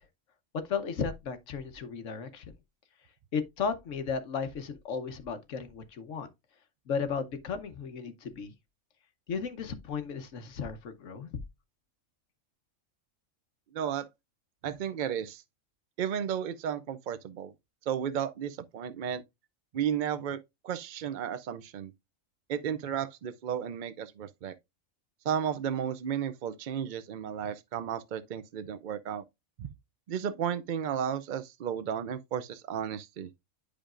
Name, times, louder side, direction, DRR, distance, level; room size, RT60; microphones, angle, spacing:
voice 1, 0.7-2.5 3.3-6.3 6.9-8.5 9.3-11.3, left 6 dB, 70° left, 1.2 m, -35 dB
voice 2, 13.7-14.1 14.6-15.4 16.0-17.5 17.9-19.2 19.7-21.9 22.5-24.5 25.2-29.2 29.6-29.7 30.1-33.3, right 8 dB, 70° right, 0.4 m, -33 dB
10.0 x 5.1 x 2.5 m
omnidirectional pair, 1.4 m